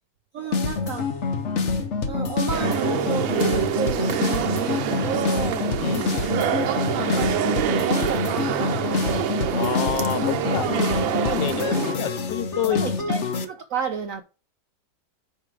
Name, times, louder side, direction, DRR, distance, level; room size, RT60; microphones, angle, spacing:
voice 1, 0.3-1.1 1.5-6.0 6.9-8.8 10.2-11.2 12.7-14.2, right 7 dB, 70° right, 0.8 m, -32 dB
sound 1, 0.5-13.4, left 5 dB, 45° left, 1.0 m, -26 dB
sound 2, 2.5-12.0, right 10 dB, 85° right, 1.5 m, -26 dB
voice 2, 5.8-6.1 9.5-10.7 11.2-12.8, left 11 dB, 75° left, 1.3 m, -28 dB
5.9 x 4.8 x 4.7 m
omnidirectional pair, 2.1 m